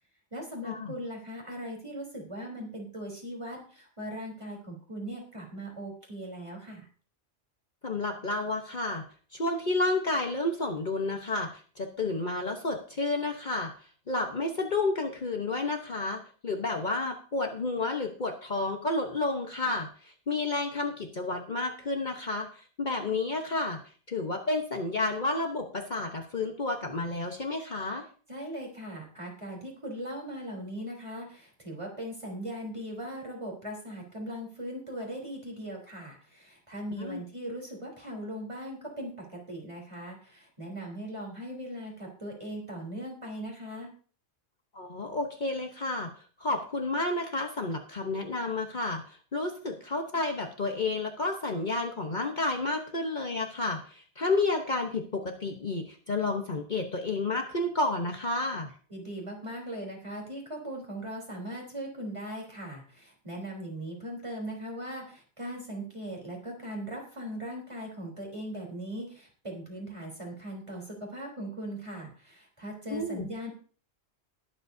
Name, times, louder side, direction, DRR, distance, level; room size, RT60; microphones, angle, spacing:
voice 1, 0.3-6.9 28.3-43.9 58.9-73.5, right 1 dB, 25° right, -1 dB, 3.8 m, -39 dB
voice 2, 7.8-9.0 9.3-13.7 14.1-23.8 24.1-28.0 37.0-37.2 44.7-58.7 72.9-73.3, left 2 dB, 45° left, 3 dB, 1.2 m, -31 dB
20.5 x 7.8 x 2.7 m, 0.42 s
omnidirectional pair, 1.2 m